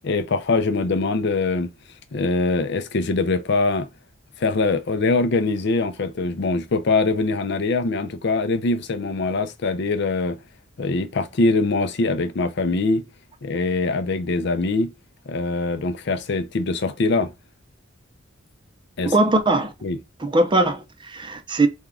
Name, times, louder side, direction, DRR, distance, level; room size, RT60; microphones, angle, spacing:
voice 1, 0.0-1.7 2.1-3.9 4.4-10.4 10.8-13.0 13.4-14.9 15.3-17.3 19.0-19.1 19.8-20.0, left 3 dB, 60° left, 0.5 m, -23 dB
voice 2, 19.0-19.7 20.2-21.7, right 2 dB, 25° right, 0.6 m, -20 dB
4.4 x 2.3 x 3.6 m
head